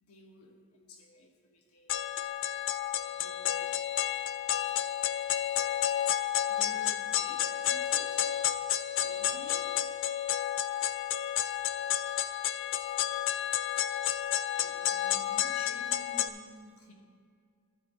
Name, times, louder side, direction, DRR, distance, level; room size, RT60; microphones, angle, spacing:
voice 1, 0.0-1.9 3.1-3.7 6.5-8.3 9.0-9.7 10.8-10.9 14.6-16.9, left 2 dB, 80° left, 1 dB, 1.4 m, -52 dB
sound 1, 1.9-16.3, left 11 dB, 60° left, 0.4 m, -31 dB
12.0 x 4.1 x 7.5 m, 2.2 s
head